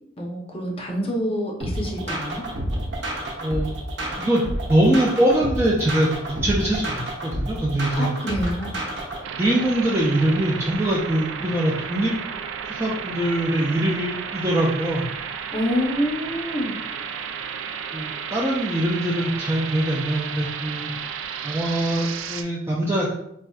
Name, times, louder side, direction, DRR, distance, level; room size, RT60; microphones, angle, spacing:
voice 1, 0.2-2.4 8.0-8.8 15.5-16.7, equal, 30° left, -1 dB, 0.6 m, -27 dB
sound 1, 1.6-9.2, right 1 dB, 65° right, 0.8 m, -29 dB
voice 2, 3.4-3.7 4.2-4.4 4.7-8.1 9.4-12.1 12.6-15.0 17.9-20.9 21.4-23.1, right 1 dB, 15° right, -6 dB, 0.4 m, -23 dB
sound 2, 9.2-22.4, right 7 dB, 85° right, 0.3 m, -33 dB
4.3 x 2.5 x 2.3 m, 0.77 s
head